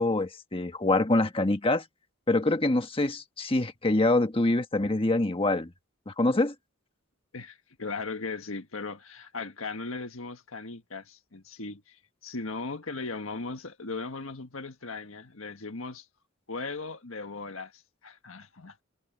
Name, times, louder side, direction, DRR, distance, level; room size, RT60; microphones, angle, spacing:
voice 1, 0.0-1.8 2.3-5.7 6.1-6.5, left 2 dB, 25° left, 1.4 m, -25 dB
voice 2, 7.3-12.0 12.2-16.0 16.5-18.8, left 3 dB, 75° left, 1.6 m, -38 dB
head